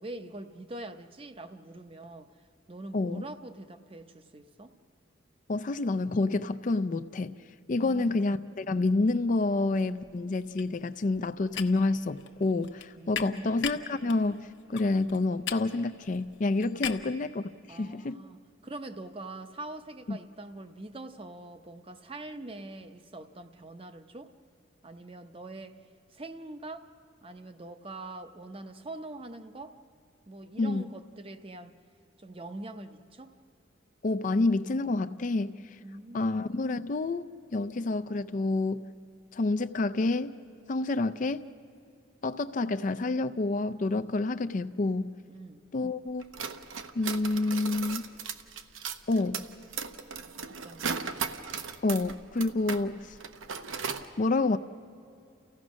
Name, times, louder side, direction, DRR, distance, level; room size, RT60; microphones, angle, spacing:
voice 1, 0.0-2.3 2.7-4.7 7.8-8.2 13.0-13.5 16.7-17.0 17.7-24.3 24.8-25.8 26.1-26.9 27.2-29.8 30.3-31.7 32.2-33.3 35.8-36.3 45.3-45.7 50.5-51.0, right 2 dB, 30° right, 0.7 m, -43 dB
voice 2, 2.9-3.2 5.5-7.3 7.7-18.2 20.1-20.2 30.6-30.8 34.0-35.6 36.1-37.2 37.5-38.9 39.3-40.3 40.7-41.4 42.2-45.2 45.7-46.2 46.9-48.0 49.1-49.4 51.8-53.1 54.2-54.6, left 2 dB, 40° left, 0.4 m, -28 dB
sound 1, 9.4-9.7 10.0-17.2, left 8 dB, 65° left, 0.9 m, -40 dB
sound 2, 46.2-52.8 53.1-54.1, right 6 dB, 85° right, 0.9 m, -36 dB
29.5 x 16.0 x 6.2 m
head